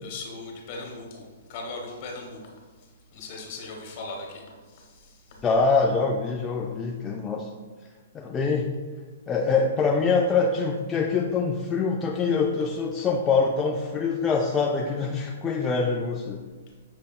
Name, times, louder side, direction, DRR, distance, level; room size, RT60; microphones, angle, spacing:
voice 1, 0.0-5.4, left 3 dB, 45° left, 0 dB, 1.2 m, -39 dB
voice 2, 5.4-7.5 8.1-8.8 9.3-16.4, left 4 dB, 20° left, 0 dB, 0.3 m, -24 dB
6.3 x 3.3 x 2.3 m, 1.5 s
hypercardioid pair, 135°, 0 cm